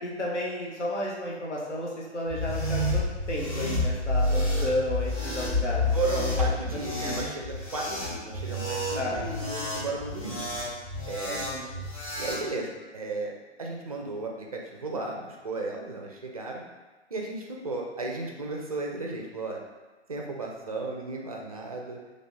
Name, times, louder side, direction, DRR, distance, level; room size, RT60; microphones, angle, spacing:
voice 1, 0.0-3.0 3.3-7.2 8.9-9.2 11.3-11.8, left 1 dB, 80° left, -4 dB, 0.9 m, -32 dB
sound 1, 2.3-12.4, left 2 dB, 30° left, 0.8 m, -29 dB
voice 2, 5.9-10.5 11.1-11.4 12.2-16.6 17.1-19.6 20.1-22.0, right 3 dB, 35° right, 0 dB, 0.4 m, -34 dB
3.2 x 2.6 x 4.1 m, 1.2 s
figure-of-eight pair, 130°, 35 cm